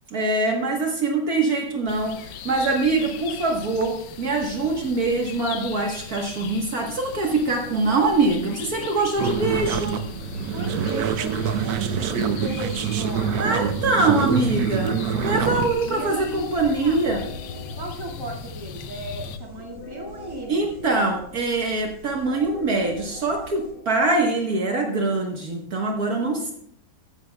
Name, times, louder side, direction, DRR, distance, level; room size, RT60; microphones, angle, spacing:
voice 1, 0.1-10.0 13.4-15.0 15.2-17.2 20.5-26.5, right 3 dB, 60° right, 1 dB, 1.8 m, -23 dB
sound 1, 1.9-19.4, left 7 dB, 90° left, 1.4 m, -38 dB
voice 2, 7.2-7.6 9.4-9.6 10.5-14.1 15.3-17.0 17.8-20.7 26.2-26.4, right 1 dB, 15° right, -2 dB, 2.3 m, -36 dB
sound 2, 9.2-15.7, right 7 dB, 90° right, 1.5 m, -25 dB
sound 3, 16.9-24.5, left 1 dB, 65° left, 2.7 m, -43 dB
15.0 x 12.5 x 2.3 m, 0.67 s
omnidirectional pair, 1.8 m